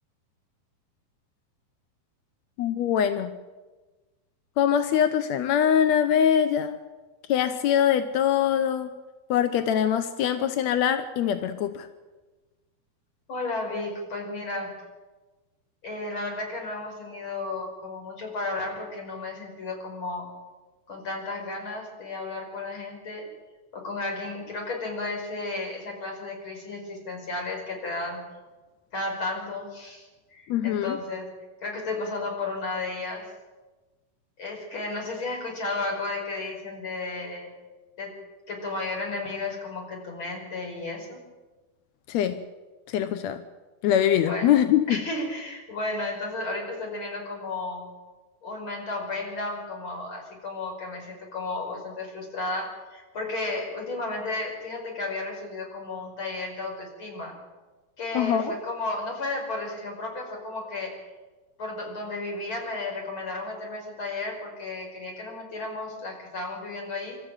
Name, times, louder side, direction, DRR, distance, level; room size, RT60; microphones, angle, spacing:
voice 1, 2.6-3.3 4.6-6.8 7.3-8.9 9.3-11.9 30.5-31.0 42.1-42.4 42.9-43.4 43.8-45.0 58.1-58.6, left 9 dB, 70° left, 9 dB, 1.7 m, -23 dB
voice 2, 13.3-14.8 15.8-20.3 20.9-23.3 23.7-28.2 28.9-31.3 31.6-33.3 34.4-37.5 38.0-38.2 38.5-41.2 44.3-44.5 44.9-47.9 48.4-57.4 58.0-61.0 61.6-67.2, left 2 dB, 35° left, 1 dB, 5.9 m, -33 dB
27.0 x 13.5 x 9.0 m, 1.2 s
omnidirectional pair, 4.3 m